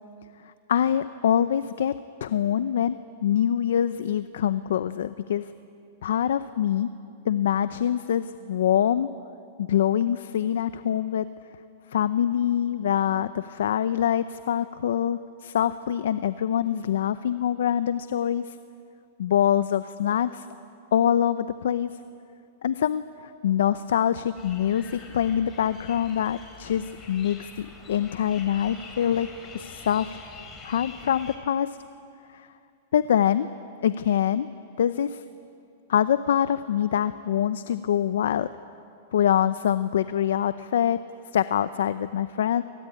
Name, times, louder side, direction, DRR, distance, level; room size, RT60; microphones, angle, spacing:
voice 1, 0.7-1.9 2.2-5.5 6.0-6.9 7.2-9.1 9.6-11.3 11.9-18.6 19.2-20.5 20.9-21.9 22.6-29.3 29.5-30.2 30.6-31.8 32.3-32.5 32.9-33.5 33.8-34.5 34.8-35.2 35.9-38.5 39.1-41.0 41.3-42.6, left 10 dB, 85° left, 13 dB, 0.7 m, -24 dB
sound 1, 24.3-31.4, left 4 dB, 25° left, 4.0 m, -45 dB
27.0 x 19.5 x 9.7 m, 2.6 s
supercardioid pair, 150°, 0 cm